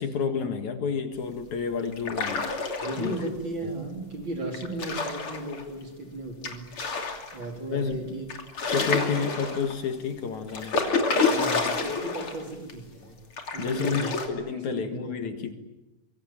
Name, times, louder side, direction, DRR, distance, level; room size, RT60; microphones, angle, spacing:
voice 1, 0.0-2.5 3.0-3.2 7.7-8.1 8.6-10.8 13.6-15.5, left 6 dB, 65° left, 7 dB, 3.1 m, -30 dB
sound 1, 1.9-3.3 4.5-5.6 6.4-7.5 7.9-8.0 8.3-9.8 10.5-12.4 12.7-12.8 13.4-14.3, left 4 dB, 40° left, 3.6 m, -28 dB
voice 2, 2.8-6.7 7.3-8.2 11.3-13.2 13.5-14.1 14.5-15.5, right 2 dB, 35° right, 2 dB, 4.8 m, -35 dB
25.5 x 24.0 x 9.0 m, 0.98 s
omnidirectional pair, 3.8 m